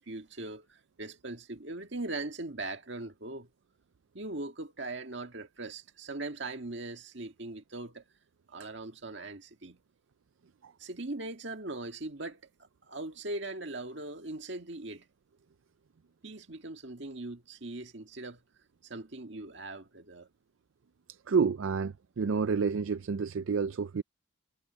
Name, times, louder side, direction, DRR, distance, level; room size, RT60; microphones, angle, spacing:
voice 1, 0.0-3.5 4.1-8.0 8.5-9.8 10.8-12.4 12.9-15.1 16.2-18.4 18.8-20.3, right 2 dB, 60° right, 2.0 m, -40 dB
voice 2, 21.3-24.0, right 5 dB, 80° right, 0.5 m, -29 dB
head